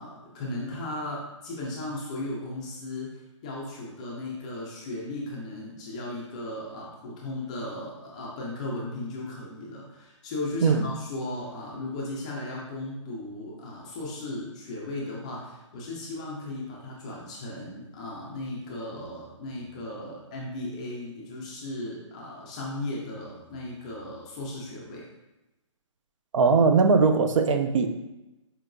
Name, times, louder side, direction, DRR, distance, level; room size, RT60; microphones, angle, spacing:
voice 1, 0.0-25.1, left 2 dB, 15° left, -4 dB, 0.3 m, -36 dB
voice 2, 26.3-27.9, right 4 dB, 75° right, 7 dB, 0.4 m, -20 dB
4.5 x 2.8 x 2.5 m, 0.98 s
hypercardioid pair, 165°, 16 cm